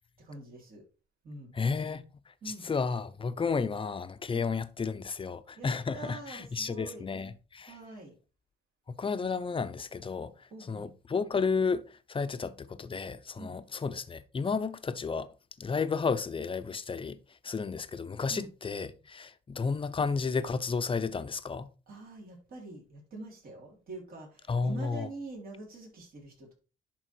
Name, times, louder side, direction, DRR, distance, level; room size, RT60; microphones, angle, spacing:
voice 1, 0.2-0.8 1.2-1.6 2.4-2.7 4.3-4.5 5.6-7.1 7.7-8.1 10.5-10.9 13.4-13.6 18.3-18.5 21.9-26.5, right 2 dB, 55° right, 3.5 m, -45 dB
voice 2, 1.5-7.8 8.9-15.3 15.6-21.7 24.5-25.1, left 5 dB, 30° left, 0.8 m, -32 dB
11.0 x 3.7 x 4.6 m
cardioid pair, 90°, 18 cm